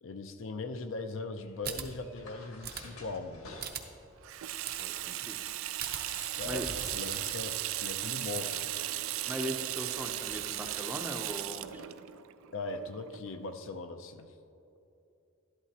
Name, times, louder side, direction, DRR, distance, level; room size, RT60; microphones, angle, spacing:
voice 1, 0.0-3.7 6.1-8.8 12.5-14.3, left 3 dB, 60° left, 8 dB, 0.5 m, -40 dB
sound 1, 1.4-11.8, left 1 dB, 80° left, 2.0 m, -52 dB
sound 2, 1.6-1.8 2.6-2.8 3.6-3.8 4.6-4.8 5.8-6.0, right 8 dB, 45° right, 0.7 m, -37 dB
Water tap faucet / Sink (filling or washing), 4.2-13.5, right 14 dB, 70° right, 0.3 m, -37 dB
voice 2, 4.8-5.4 6.1-6.7 9.3-11.8, right 1 dB, 10° right, 2 dB, 0.6 m, -40 dB
12.5 x 11.5 x 2.8 m, 2.7 s
head